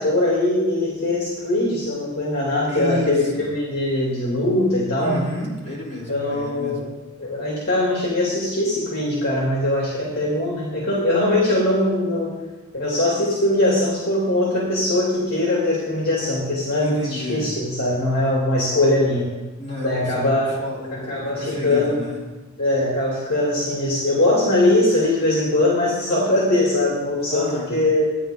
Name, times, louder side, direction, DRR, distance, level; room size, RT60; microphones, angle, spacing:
voice 1, 0.0-5.2 6.1-6.8 7.2-12.3 12.7-19.3 19.8-20.5 20.9-22.0 22.6-28.2, left 1 dB, 45° left, -5 dB, 2.6 m, -21 dB
voice 2, 2.7-3.5 5.0-6.8 16.8-17.5 19.6-22.2 27.3-27.7, left 1 dB, 30° left, -6 dB, 3.9 m, -31 dB
14.0 x 9.9 x 3.8 m, 1.2 s
head